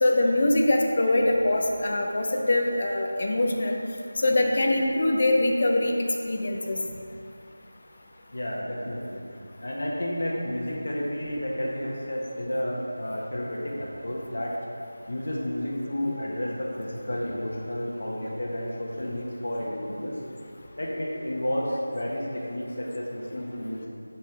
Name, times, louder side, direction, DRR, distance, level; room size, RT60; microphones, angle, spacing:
voice 1, 0.0-3.8 4.2-5.9 6.2-6.8, left 1 dB, 30° left, 1 dB, 0.6 m, -23 dB
voice 2, 8.3-9.2 9.6-14.6 15.1-20.2 20.8-23.9, left 1 dB, 55° left, -3 dB, 1.2 m, -31 dB
8.2 x 5.8 x 3.3 m, 2.5 s
figure-of-eight pair, 180°, 0 cm